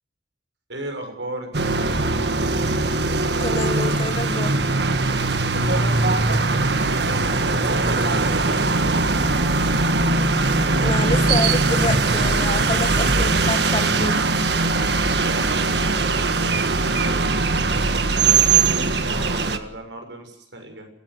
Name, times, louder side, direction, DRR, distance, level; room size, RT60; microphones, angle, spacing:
voice 1, 0.7-2.0 5.3-9.0 15.1-17.8 18.1-20.9, right 1 dB, 85° right, 5 dB, 7.0 m, -36 dB
sound 1, 1.5-19.6, right 3 dB, 70° right, 1.7 m, -20 dB
voice 2, 3.4-4.6 10.8-14.2, left 2 dB, 30° left, 11 dB, 1.3 m, -28 dB
25.5 x 17.0 x 7.9 m, 0.72 s
head